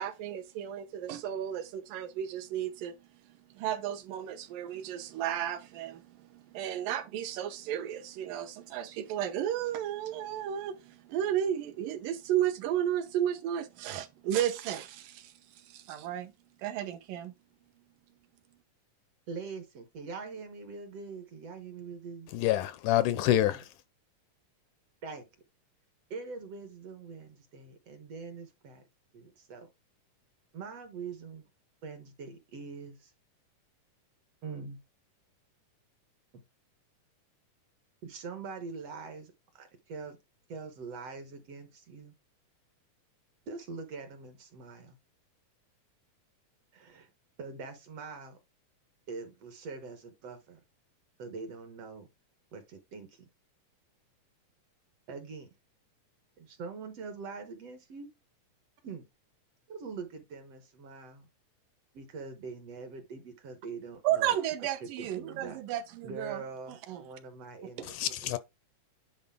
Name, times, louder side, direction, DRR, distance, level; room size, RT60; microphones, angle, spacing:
voice 1, 0.0-3.0 3.2-16.3 16.6-17.3 64.0-66.4 66.7-67.1, right 11 dB, 80° right, 2.5 m, -33 dB
voice 2, 19.3-22.3 23.5-23.6 25.0-25.2 26.1-28.8 29.1-29.7 30.5-31.5 31.8-33.1 34.4-34.8 38.0-40.2 40.5-42.1 43.5-45.0 46.7-47.1 47.4-48.4 49.1-50.6 51.2-52.1 52.5-53.2 55.1-55.5 56.4-58.1 58.8-59.1 59.7-61.3 61.9-64.4 65.0-65.6 66.0-68.4, right 4 dB, 60° right, 1.8 m, -43 dB
voice 3, 22.3-23.7 67.8-68.4, left 13 dB, 80° left, 1.9 m, -27 dB
10.0 x 4.0 x 3.6 m
omnidirectional pair, 3.8 m